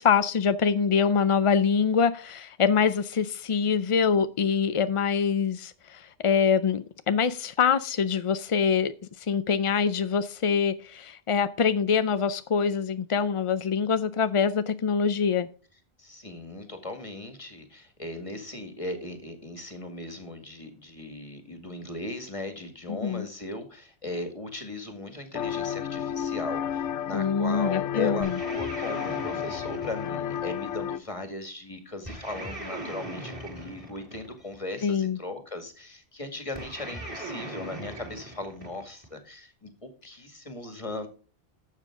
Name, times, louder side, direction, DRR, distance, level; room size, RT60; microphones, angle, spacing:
voice 1, 0.0-8.9 9.2-15.5 22.9-23.3 27.1-28.3 34.8-35.2, left 6 dB, 50° left, 12 dB, 0.4 m, -24 dB
voice 2, 16.0-41.1, left 2 dB, 30° left, 7 dB, 2.0 m, -38 dB
sound 1, 25.3-31.0, left 9 dB, 90° left, 1.0 m, -32 dB
sound 2, 28.2-30.8 32.1-34.6 36.6-39.1, right 1 dB, 20° right, 4.7 m, -39 dB
12.0 x 7.5 x 3.7 m, 0.38 s
omnidirectional pair, 1.2 m